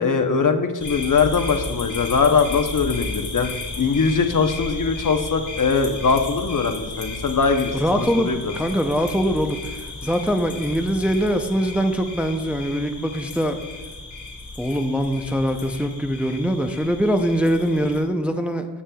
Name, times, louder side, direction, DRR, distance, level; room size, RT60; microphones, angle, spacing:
voice 1, 0.0-3.5 3.8-8.5, left 5 dB, 50° left, 6 dB, 0.8 m, -21 dB
sound 1, 0.8-18.0, left 2 dB, 70° left, 2.1 m, -34 dB
voice 2, 7.7-13.6 14.6-18.7, equal, 5° right, 5 dB, 0.5 m, -23 dB
13.5 x 7.3 x 2.3 m, 1.3 s
wide cardioid pair, 75°, 41 cm